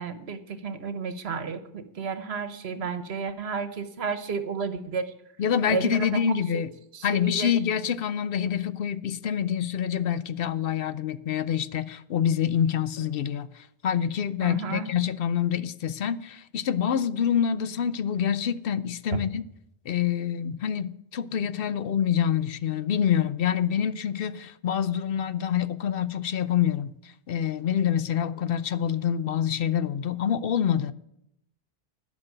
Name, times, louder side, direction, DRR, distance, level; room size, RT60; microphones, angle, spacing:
voice 1, 0.0-5.1 5.7-6.2 6.5-6.6 6.9-7.5 14.4-14.9 19.1-19.2, right 5 dB, 75° right, 1.3 m, -32 dB
voice 2, 5.4-6.7 7.0-19.4 19.9-30.9, left 8 dB, 65° left, 0.7 m, -26 dB
11.5 x 6.1 x 8.9 m
omnidirectional pair, 1.1 m